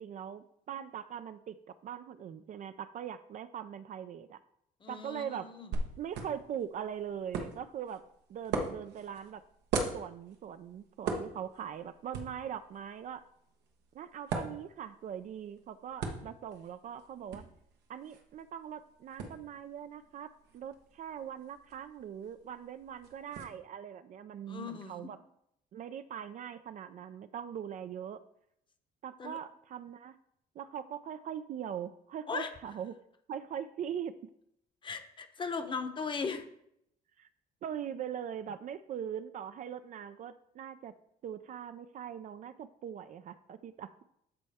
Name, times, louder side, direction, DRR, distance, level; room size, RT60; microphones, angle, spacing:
voice 1, 0.0-4.4 4.9-5.5 6.0-8.0 8.3-9.4 9.9-13.2 13.9-17.4 17.9-25.2 25.7-28.2 29.0-30.2 30.6-32.9 33.3-34.1 37.2-37.3 37.6-40.9 41.2-44.0, right 9 dB, 50° right, 11 dB, 0.4 m, -41 dB
voice 2, 4.8-5.7 24.5-25.1 29.2-29.4 32.3-32.5 34.8-36.5, left 5 dB, 30° left, 8 dB, 0.9 m, -38 dB
sound 1, 5.7-23.4, right 4 dB, 85° right, 1.2 m, -42 dB
12.0 x 4.2 x 3.5 m, 0.75 s
cardioid pair, 110°, 17 cm